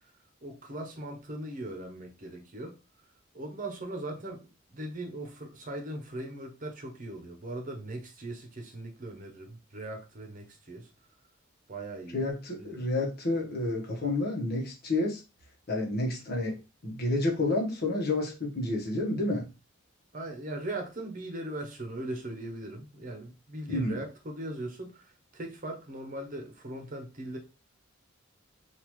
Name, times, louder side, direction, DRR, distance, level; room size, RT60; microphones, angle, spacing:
voice 1, 0.4-2.8 3.3-10.9 11.7-12.3 12.5-12.9 20.1-27.4, right 1 dB, 40° right, 0.8 m, -39 dB
voice 2, 12.1-15.2 15.7-16.6 16.8-19.5 23.7-24.0, left 2 dB, 50° left, 1.1 m, -30 dB
3.8 x 2.5 x 3.0 m
head